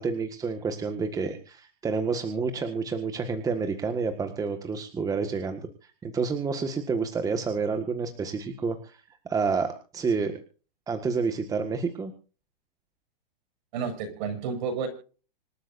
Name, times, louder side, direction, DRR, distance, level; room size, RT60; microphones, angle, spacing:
voice 1, 0.0-5.6 6.0-9.0 9.3-10.3 10.9-12.1, right 5 dB, 10° right, 7 dB, 1.7 m, -29 dB
voice 2, 13.7-14.9, right 6 dB, 50° right, 7 dB, 7.4 m, -31 dB
26.5 x 13.0 x 2.6 m, 0.38 s
hypercardioid pair, 145°, 29 cm